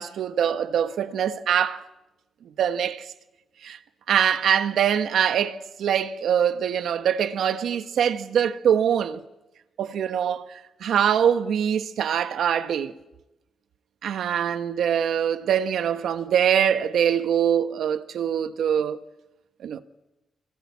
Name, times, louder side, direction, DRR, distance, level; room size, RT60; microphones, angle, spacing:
voice 1, 0.0-1.8 2.6-3.1 3.6-3.8 4.1-9.2 9.8-10.5 10.8-12.9 14.0-19.0 19.6-19.8, right 8 dB, 75° right, 1.3 m, -23 dB
26.0 x 25.5 x 8.5 m
wide cardioid pair, 160°, 0 cm